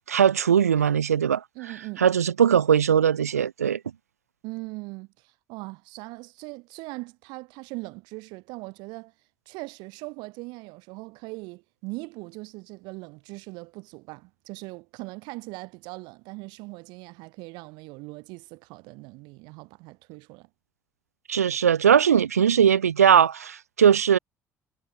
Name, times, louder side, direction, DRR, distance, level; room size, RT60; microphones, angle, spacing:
voice 1, 0.1-1.4 2.0-3.8 21.3-24.2, right 8 dB, 85° right, 0.7 m, -20 dB
voice 2, 1.5-2.1 4.4-9.1 9.4-20.5, right 26 dB, 65° right, 5.1 m, -40 dB
figure-of-eight pair, 50°, 8 cm